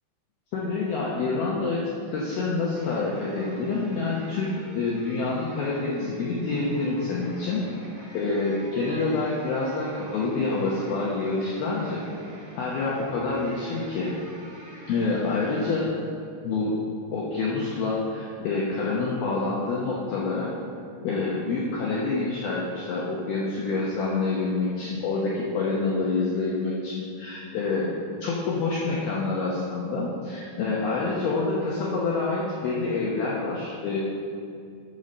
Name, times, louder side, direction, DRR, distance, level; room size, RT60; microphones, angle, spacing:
voice 1, 0.5-7.6 8.1-12.0 12.6-14.1 14.9-15.9 16.4-16.8 17.1-20.6 21.0-27.9 28.2-34.0, left 3 dB, 80° left, -5 dB, 2.2 m, -27 dB
sound 1, 2.7-15.8, right 1 dB, 60° right, 1.4 m, -46 dB
11.0 x 5.8 x 6.5 m, 2.4 s
omnidirectional pair, 5.9 m